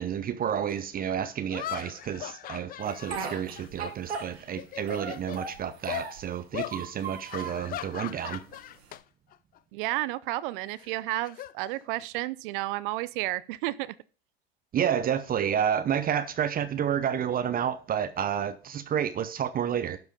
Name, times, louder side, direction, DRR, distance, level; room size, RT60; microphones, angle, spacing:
voice 1, 0.0-8.4 14.7-20.0, right 9 dB, 30° right, 0.9 m, -30 dB
sound 1, 0.7-0.8 1.5-4.2 4.5-5.4 5.9-6.1 6.5-6.8 7.3-9.0 9.3-9.6 10.8-12.2, left 13 dB, 30° left, 0.5 m, -39 dB
Speech, 2.8-4.6 4.9-6.3 6.6-7.6 8.2-9.0, right 5 dB, 85° right, 2.5 m, -38 dB
voice 2, 9.7-13.9, right 17 dB, 55° right, 0.6 m, -32 dB
12.0 x 4.9 x 5.2 m
hypercardioid pair, 95°, 31 cm